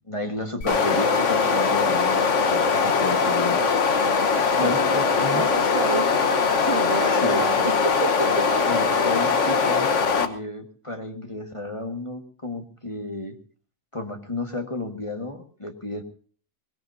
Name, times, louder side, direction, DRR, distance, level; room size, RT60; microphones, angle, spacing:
voice 1, 0.1-3.6 4.6-5.4 6.8-7.5 8.7-13.4 13.9-16.0, left 2 dB, 25° left, 4 dB, 1.6 m, -32 dB
sound 1, 0.6-10.3, left 5 dB, 65° left, 1.5 m, -21 dB
voice 2, 4.6-4.9 5.3-6.3 6.7-8.8, right 3 dB, 55° right, 5 dB, 2.1 m, -30 dB
23.5 x 19.5 x 2.7 m, 0.43 s
omnidirectional pair, 1.3 m